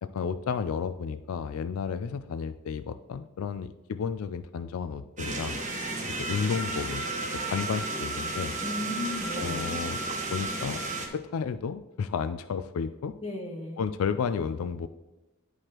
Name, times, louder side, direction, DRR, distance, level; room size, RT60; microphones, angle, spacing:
voice 1, 0.0-5.6 6.1-7.1 7.3-8.6 9.4-10.8 11.1-13.1 13.8-14.9, left 6 dB, 80° left, 11 dB, 0.4 m, -32 dB
sound 1, 5.2-11.1, right 2 dB, 35° right, 1.3 m, -34 dB
sound 2, 6.2-11.0, right 3 dB, 20° right, 2.0 m, -37 dB
voice 2, 8.6-9.8 13.2-13.9, left 2 dB, 25° left, -1 dB, 1.4 m, -35 dB
10.5 x 4.8 x 3.0 m, 1.1 s
head